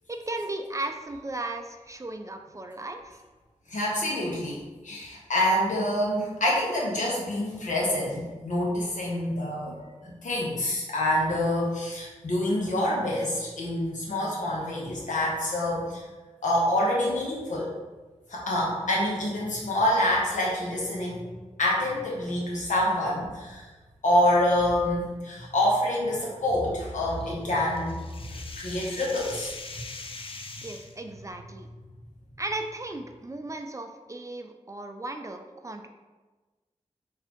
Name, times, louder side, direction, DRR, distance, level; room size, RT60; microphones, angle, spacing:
voice 1, 0.1-3.2 30.6-31.7 32.4-35.9, right 2 dB, 25° right, 5 dB, 0.4 m, -36 dB
voice 2, 3.7-16.0 16.4-17.7 18.3-21.2 21.6-23.6 24.0-28.0 28.3-29.5, left 1 dB, 80° left, -4 dB, 1.0 m, -26 dB
sound 1, 27.2-31.0, left 3 dB, 45° left, 0.4 m, -42 dB
4.0 x 2.7 x 2.9 m, 1.2 s
cardioid pair, 50°, 13 cm